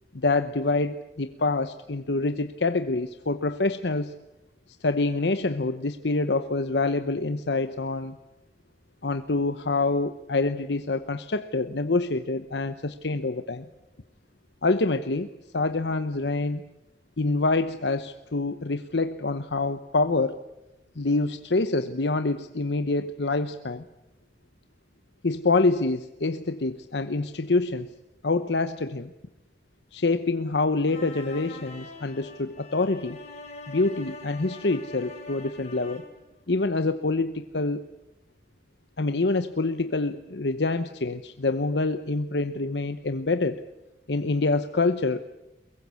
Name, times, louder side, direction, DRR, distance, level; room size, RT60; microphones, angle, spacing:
voice 1, 0.1-4.1 4.8-8.2 9.0-13.7 14.6-16.6 17.2-20.4 21.0-23.8 25.2-27.9 28.2-29.1 29.9-33.2 33.7-36.0 36.5-37.8 39.0-43.6 44.1-45.2, left 3 dB, 75° left, 10 dB, 1.0 m, -26 dB
sound 1, 30.9-36.2, left 3 dB, 40° left, 5.0 m, -43 dB
23.0 x 22.0 x 8.4 m, 0.95 s
head